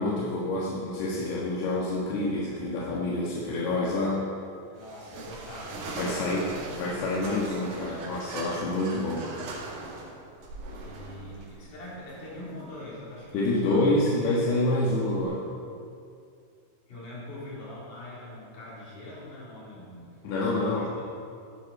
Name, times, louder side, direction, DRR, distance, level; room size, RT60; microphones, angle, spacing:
voice 1, 0.0-4.2 6.0-6.5 6.8-9.4 13.3-15.4 20.2-20.9, left 2 dB, 80° left, -5 dB, 3.5 m, -27 dB
voice 2, 4.7-6.8 10.7-13.9 16.9-20.1 20.3-21.0, left 1 dB, 55° left, -7 dB, 5.0 m, -42 dB
sound 1, 4.8-15.2, right 3 dB, 75° right, 4.0 m, -41 dB
16.0 x 12.5 x 4.3 m, 2.4 s
omnidirectional pair, 4.6 m